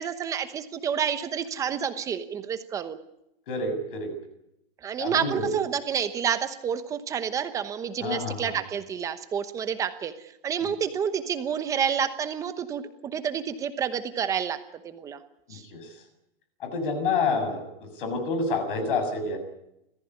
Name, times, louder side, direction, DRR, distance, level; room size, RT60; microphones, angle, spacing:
voice 1, 0.0-3.0 4.8-10.1 10.4-12.8 13.1-14.6 14.8-15.2 15.5-15.6, right 8 dB, 10° right, 11 dB, 0.9 m, -29 dB
voice 2, 3.5-4.1 5.0-5.5 8.0-8.6 15.5-15.9 16.6-19.4, left 3 dB, 60° left, 9 dB, 7.0 m, -28 dB
29.0 x 15.5 x 9.8 m, 0.84 s
supercardioid pair, 180°, 29 cm